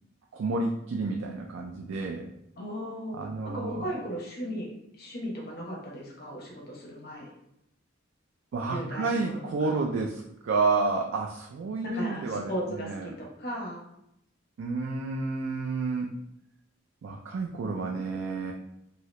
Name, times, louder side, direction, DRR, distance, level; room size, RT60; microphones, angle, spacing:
voice 1, 0.3-2.3 3.1-3.9 8.5-13.1 14.6-16.1 17.0-18.5, right 3 dB, 70° right, 0 dB, 0.3 m, -30 dB
voice 2, 2.6-3.2 3.4-4.7 5.0-7.3 8.7-9.8 11.8-13.8, equal, 50° left, -2 dB, 0.8 m, -36 dB
2.9 x 2.7 x 3.1 m, 0.81 s
head